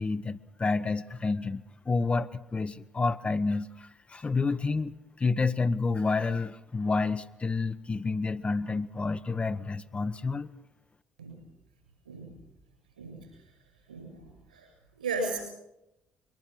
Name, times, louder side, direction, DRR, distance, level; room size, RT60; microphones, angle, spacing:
voice 1, 0.0-4.9 5.2-10.5, left 4 dB, 25° left, 10 dB, 0.9 m, -29 dB
voice 2, 13.0-13.3 13.9-14.7 15.0-15.4, right 3 dB, 85° right, 4 dB, 7.5 m, -35 dB
23.0 x 22.5 x 6.2 m, 0.91 s
figure-of-eight pair, 45°, 4 cm